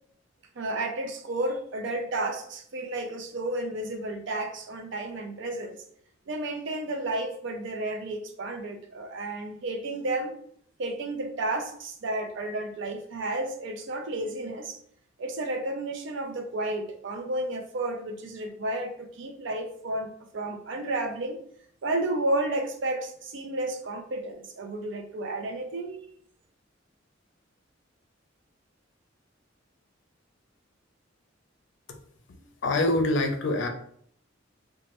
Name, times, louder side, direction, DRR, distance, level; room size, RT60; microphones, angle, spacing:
voice 1, 0.6-5.8 6.3-10.3 10.8-14.8 15.2-21.4 21.8-26.0, right 2 dB, 70° right, 5 dB, 0.5 m, -32 dB
voice 2, 32.4-33.7, left 2 dB, 65° left, 6 dB, 0.5 m, -25 dB
3.0 x 2.2 x 2.9 m, 0.64 s
head